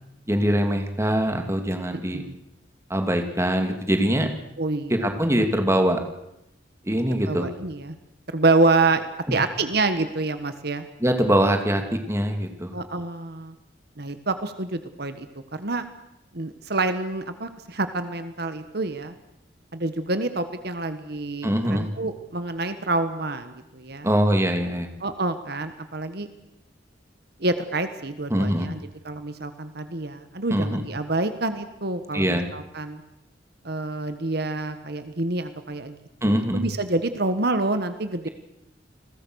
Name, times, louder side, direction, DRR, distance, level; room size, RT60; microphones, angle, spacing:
voice 1, 0.3-2.2 2.9-4.3 4.9-6.0 6.8-7.5 11.0-12.7 21.4-21.9 24.0-24.9 28.3-28.7 30.5-30.8 32.1-32.5 36.2-36.6, equal, 15° right, 5 dB, 2.8 m, -23 dB
voice 2, 4.6-5.0 7.3-8.0 8.3-10.9 12.7-13.5 14.0-15.3 15.5-15.8 16.3-19.1 19.7-24.1 25.0-26.3 27.4-33.0 33.6-36.0 36.2-38.3, right 2 dB, 60° right, 9 dB, 1.5 m, -27 dB
30.0 x 21.0 x 6.5 m, 0.87 s
head